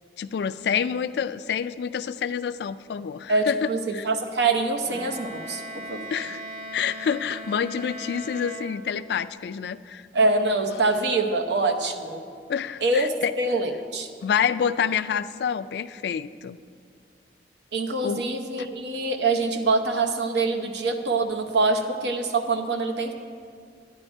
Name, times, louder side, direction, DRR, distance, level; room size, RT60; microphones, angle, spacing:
voice 1, 0.2-4.1 6.1-6.4 6.7-10.1 12.5-13.3 14.2-16.6 18.0-18.2 18.6-18.7, left 7 dB, 70° left, 14 dB, 0.3 m, -28 dB
voice 2, 3.3-5.6 5.9-6.0 10.1-12.2 12.8-14.1 17.7-23.1, right 3 dB, 80° right, 5 dB, 0.8 m, -24 dB
Bowed string instrument, 4.8-9.3, equal, 40° right, 2.3 m, -39 dB
10.0 x 9.8 x 4.4 m, 2.2 s
head